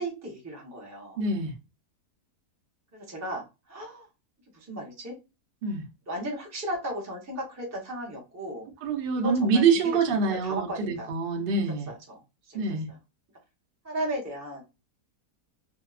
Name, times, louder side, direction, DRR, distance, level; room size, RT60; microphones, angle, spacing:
voice 1, 0.0-1.2 2.9-4.1 4.5-5.1 6.1-8.7 9.1-9.6 10.1-11.1 11.9-12.6 13.8-14.6, right 1 dB, 20° right, 0.4 m, -35 dB
voice 2, 1.2-1.5 5.6-5.8 8.8-11.9 12.5-12.9, right 5 dB, 75° right, 0.5 m, -25 dB
2.7 x 2.2 x 2.3 m
omnidirectional pair, 1.7 m